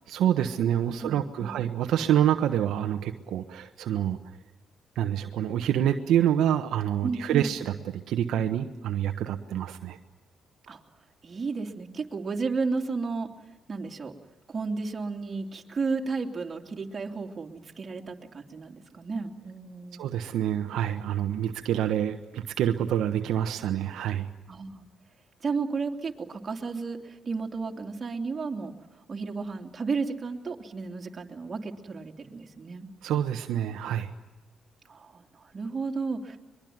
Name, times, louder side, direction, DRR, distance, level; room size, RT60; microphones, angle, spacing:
voice 1, 0.1-4.2 5.0-7.7 8.1-10.0 20.0-24.3 33.0-34.1, right 10 dB, 85° right, 5 dB, 1.2 m, -27 dB
voice 2, 0.9-1.6 7.0-7.5 10.7-10.8 11.2-13.3 13.7-14.1 14.5-20.0 24.5-24.8 25.4-28.7 29.1-32.9 34.9-36.4, right 4 dB, 35° right, 2 dB, 2.9 m, -33 dB
23.0 x 22.5 x 9.4 m, 1.2 s
cardioid pair, 90°, 0 cm